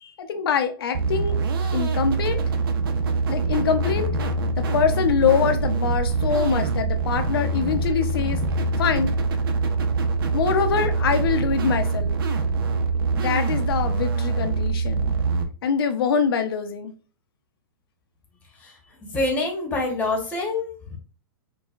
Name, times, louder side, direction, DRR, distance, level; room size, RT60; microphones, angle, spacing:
voice 1, 0.0-1.4 1.7-2.4 3.3-4.1 4.6-8.4 8.8-9.1 10.3-12.1 13.2-15.1 15.6-16.9, left 6 dB, 75° left, 0.6 m, -24 dB
sound 1, 0.9-15.4, right 3 dB, 70° right, 0.7 m, -24 dB
voice 2, 19.1-21.0, left 2 dB, 10° left, 1.0 m, -26 dB
4.6 x 2.3 x 2.4 m
hypercardioid pair, 155°, 12 cm